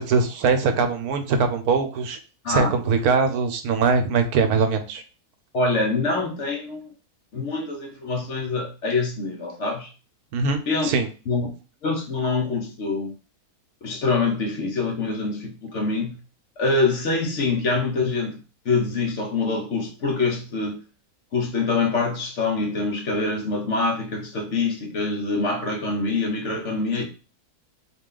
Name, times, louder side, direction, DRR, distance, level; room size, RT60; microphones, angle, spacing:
voice 1, 0.0-2.2 2.5-5.0 10.3-11.1, right 4 dB, 75° right, 1.2 m, -22 dB
voice 2, 5.5-6.9 7.3-9.9 10.7-10.9 11.3-11.5 11.8-13.1 13.8-16.2 16.6-18.4 18.6-20.8 21.3-27.0, left 3 dB, 55° left, 1.1 m, -25 dB
4.1 x 2.9 x 3.8 m
omnidirectional pair, 1.6 m